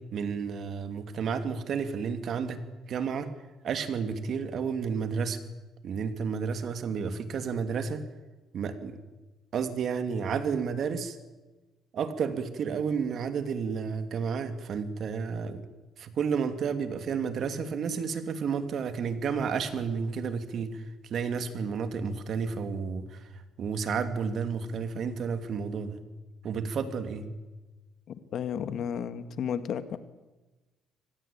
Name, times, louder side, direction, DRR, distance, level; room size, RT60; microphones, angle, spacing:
voice 1, 0.1-2.6 2.9-3.3 3.6-5.4 5.8-8.0 8.5-8.9 9.5-11.2 11.9-15.7 16.0-26.0 26.4-27.3, right 6 dB, 55° right, 9 dB, 2.8 m, -31 dB
voice 2, 28.1-30.0, left 8 dB, 60° left, 12 dB, 1.9 m, -33 dB
25.0 x 19.5 x 8.7 m, 1.2 s
cardioid pair, 95°, 0 cm